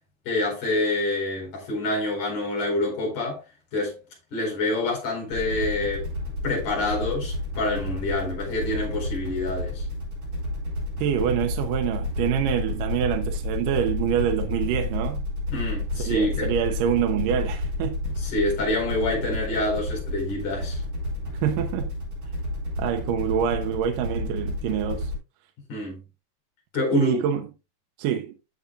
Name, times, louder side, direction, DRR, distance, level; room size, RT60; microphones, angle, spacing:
voice 1, 0.3-3.4 3.7-4.0 4.3-6.1 6.4-9.9 15.5-16.6 18.2-20.8 25.7-26.0 26.7-27.2, left 2 dB, 60° left, 6.0 m, -27 dB
sound 1, 5.3-25.2, left 1 dB, 55° right, 6.4 m, -30 dB
voice 2, 11.0-15.2 16.0-18.1 21.4-21.9 22.8-25.1 26.9-27.4 28.0-28.4, right 9 dB, 75° right, 2.5 m, -26 dB
13.0 x 7.1 x 2.4 m
omnidirectional pair, 3.9 m